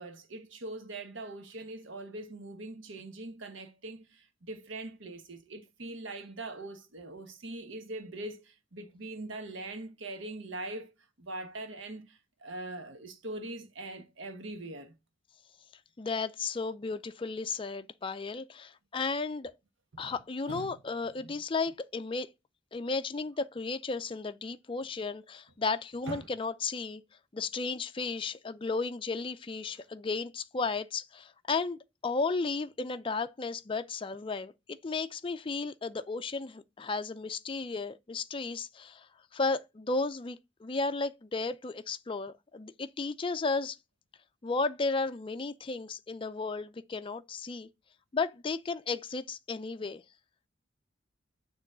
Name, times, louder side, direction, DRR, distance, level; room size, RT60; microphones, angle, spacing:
voice 1, 0.0-10.9 11.2-15.0 19.9-20.2 20.5-20.7 21.2-21.4 26.1-26.3 29.7-29.8, right 2 dB, 75° right, 1.2 m, -42 dB
voice 2, 16.0-19.5 20.0-22.3 22.7-27.0 27.3-43.8 44.4-47.7 48.1-50.0, left 4 dB, 25° left, 0.4 m, -34 dB
6.8 x 3.1 x 6.0 m
head